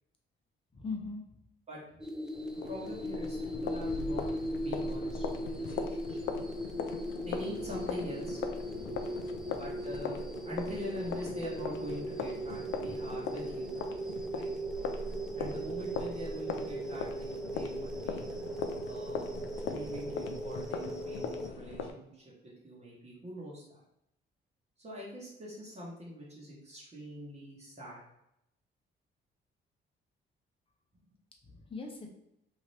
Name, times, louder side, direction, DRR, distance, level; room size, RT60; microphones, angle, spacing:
voice 1, 0.7-1.2 8.8-9.5 31.5-32.1, left 4 dB, 25° left, 2 dB, 0.8 m, -41 dB
sound 1, 2.0-21.5, right 1 dB, 5° right, 0.3 m, -38 dB
sound 2, 2.3-21.9, left 5 dB, 80° left, 0.4 m, -40 dB
voice 2, 2.6-4.3 4.6-6.3 7.2-8.4 9.6-13.7 14.3-14.5 15.1-18.2 18.8-19.3 19.6-23.8 24.8-28.0, equal, 35° right, -6 dB, 1.1 m, -43 dB
2.7 x 2.7 x 3.2 m, 0.79 s
cardioid pair, 90°, 20 cm